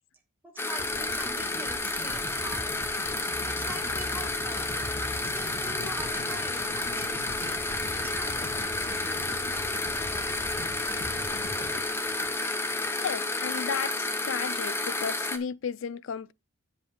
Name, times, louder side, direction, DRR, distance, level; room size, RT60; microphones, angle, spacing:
voice 1, 0.4-2.8 3.4-4.8 5.2-7.6 8.0-8.8 11.6-11.7, right 2 dB, 10° right, 1.7 m, -44 dB
sound 1, 0.6-15.4, left 2 dB, 10° left, 0.7 m, -31 dB
sound 2, 0.8-13.0 13.2-13.4, left 1 dB, 50° left, 2.3 m, -43 dB
sound 3, 3.0-11.8, left 1 dB, 25° left, 3.8 m, -45 dB
voice 2, 13.0-16.3, left 6 dB, 65° left, 0.4 m, -34 dB
8.1 x 7.7 x 3.6 m
head